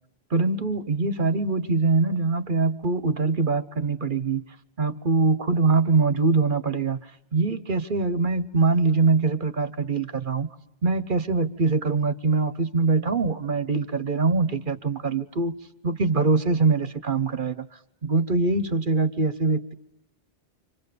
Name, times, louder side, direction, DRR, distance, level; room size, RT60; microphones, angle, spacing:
voice 1, 0.3-4.4 4.8-7.0 7.3-10.5 10.8-15.5 15.8-17.7 18.0-19.7, right 4 dB, 50° right, 13 dB, 1.3 m, -23 dB
30.0 x 26.5 x 6.8 m, 0.87 s
omnidirectional pair, 1.1 m